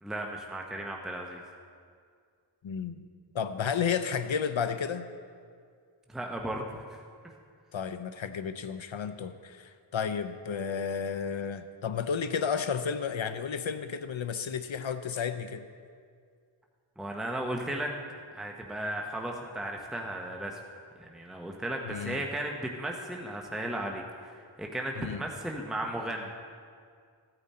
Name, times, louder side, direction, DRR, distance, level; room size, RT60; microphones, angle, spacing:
voice 1, 0.0-1.4 6.1-7.3 17.0-17.9 18.3-20.6 21.0-26.3, right 1 dB, ahead, 0 dB, 1.0 m, -35 dB
voice 2, 2.6-3.0 3.3-5.1 7.7-15.6 21.8-22.2 25.0-25.2, left 6 dB, 70° left, 10 dB, 0.6 m, -32 dB
15.5 x 9.0 x 4.3 m, 2.1 s
wide cardioid pair, 55°, 49 cm